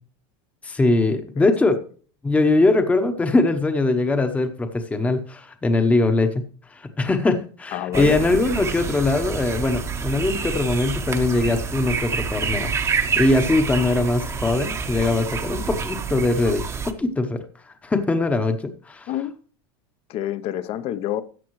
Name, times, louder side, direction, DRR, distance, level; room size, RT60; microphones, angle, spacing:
voice 1, 0.6-1.8 2.2-6.4 6.7-12.7 13.1-16.6 17.0-17.4 17.8-19.1, left 2 dB, 10° left, 0.9 m, -21 dB
voice 2, 7.7-8.3 19.1-19.3 20.1-21.2, left 12 dB, 45° left, 0.7 m, -27 dB
sound 1, 7.9-16.9, right 5 dB, 20° right, 0.9 m, -28 dB
14.0 x 8.4 x 3.1 m
supercardioid pair, 140°, 14 cm